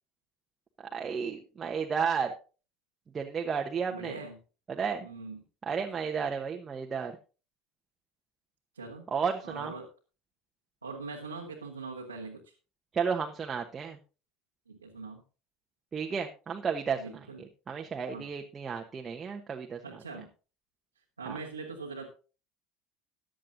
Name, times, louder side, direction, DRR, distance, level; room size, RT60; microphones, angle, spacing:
voice 1, 0.9-2.3 3.1-4.2 4.7-5.1 5.7-7.1 9.1-9.7 12.9-14.0 15.9-19.8 21.3-21.4, right 6 dB, 30° right, 2 dB, 1.2 m, -33 dB
voice 2, 3.9-4.4 5.0-5.4 8.7-9.1 9.4-9.9 10.8-12.5 14.7-15.2 17.0-17.4 18.1-18.3 19.8-20.3 21.2-22.1, right 4 dB, 90° right, -2 dB, 1.5 m, -42 dB
14.5 x 10.0 x 2.7 m, 0.34 s
figure-of-eight pair, 70°, 0 cm